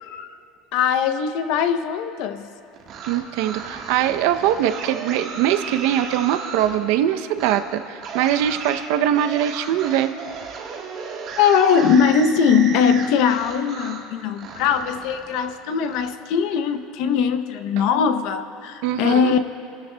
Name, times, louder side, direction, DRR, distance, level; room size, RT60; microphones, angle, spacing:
voice 1, 0.0-0.3 0.7-2.5 11.4-19.4, left 7 dB, 55° left, 9 dB, 0.6 m, -20 dB
sound 1, 2.7-6.8 7.3-7.6 8.0-14.1 14.4-16.1, right 5 dB, 40° right, 1.3 m, -35 dB
voice 2, 3.1-10.1 17.8-17.9 18.8-19.3, right 11 dB, 65° right, 9 dB, 0.6 m, -22 dB
28.0 x 13.0 x 2.2 m, 2.8 s
cardioid pair, 165°, 0 cm